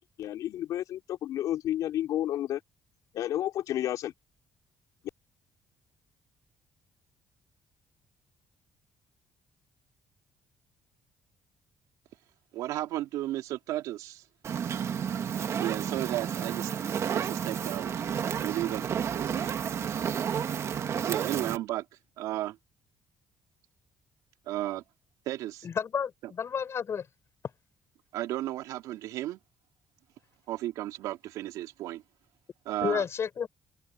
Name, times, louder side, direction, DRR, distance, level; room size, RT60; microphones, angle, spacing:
voice 1, 0.2-2.6 3.1-4.1, left 12 dB, 75° left, 4.5 m, -31 dB
voice 2, 12.5-14.2 15.6-16.7 17.0-18.1 18.4-19.5 21.1-21.8 22.2-22.6 24.5-24.8 25.3-25.7 28.1-29.4 30.5-32.0 32.6-33.0, right 14 dB, 85° right, 2.8 m, -34 dB
Fire, 14.4-21.6, right 8 dB, 55° right, 2.0 m, -31 dB
voice 3, 25.6-27.1 32.8-33.5, left 7 dB, 50° left, 7.3 m, -31 dB
cardioid pair, 80°, 6 cm